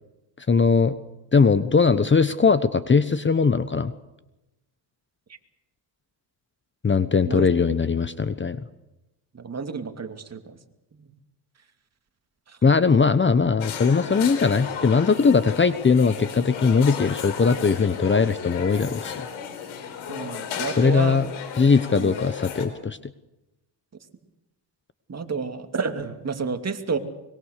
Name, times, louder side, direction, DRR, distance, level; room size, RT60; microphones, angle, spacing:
voice 1, 0.5-1.0 1.3-3.9 6.8-8.6 12.6-19.3 20.8-21.3 21.6-23.0, left 5 dB, 25° left, 14 dB, 1.1 m, -20 dB
voice 2, 9.3-10.6 10.9-11.1 12.5-12.6 20.1-21.3 22.0-22.3 25.1-27.0, right 5 dB, 35° right, 7 dB, 2.7 m, -30 dB
sound 1, 13.6-22.7, left 7 dB, 90° left, 4.1 m, -34 dB
24.5 x 22.5 x 6.7 m, 0.98 s
cardioid pair, 95°, 47 cm